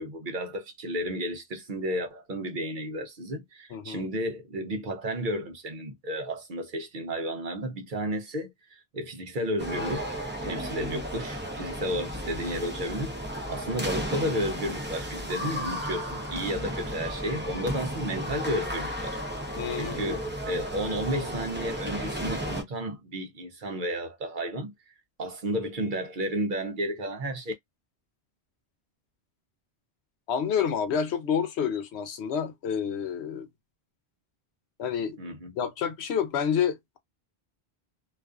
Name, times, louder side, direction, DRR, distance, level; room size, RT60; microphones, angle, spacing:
voice 1, 0.0-10.1 10.4-13.1 13.5-19.2 19.7-24.9 25.2-27.5 35.2-35.5, equal, 55° right, 0.7 m, -32 dB
voice 2, 3.7-4.0 10.8-10.9 19.6-20.2 30.3-33.5 34.8-35.2 35.6-37.0, left 7 dB, 80° left, 0.9 m, -29 dB
sound 1, 9.6-22.6, equal, 15° right, 0.6 m, -34 dB
2.4 x 2.4 x 2.3 m
omnidirectional pair, 1.1 m